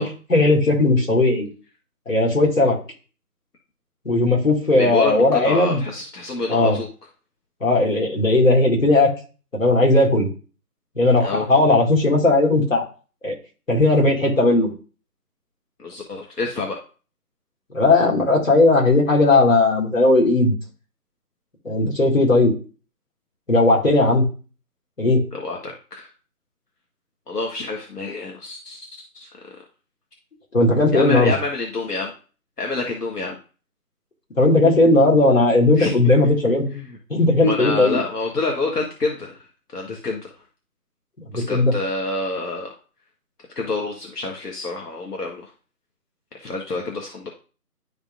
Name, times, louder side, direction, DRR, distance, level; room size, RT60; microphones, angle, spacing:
voice 1, 0.0-1.5 2.1-2.8 4.0-5.8 6.5-6.8 7.6-9.1 9.5-10.3 11.0-12.8 13.2-13.3 13.7-14.7 17.7-20.5 21.6-22.5 23.5-24.3 25.0-25.2 30.5-31.3 34.4-36.7 37.1-38.0 41.3-41.7, left 2 dB, 55° left, -2 dB, 2.5 m, -17 dB
voice 2, 4.8-6.9 11.2-11.5 15.8-16.8 25.3-26.1 27.3-29.3 30.9-32.1 32.6-33.4 35.8-36.0 36.7-37.0 37.4-39.4 39.7-40.3 41.3-42.7 43.5-45.5 46.4-47.3, left 3 dB, 80° left, 0 dB, 1.5 m, -27 dB
11.0 x 3.7 x 2.5 m, 0.37 s
figure-of-eight pair, 180°, 47 cm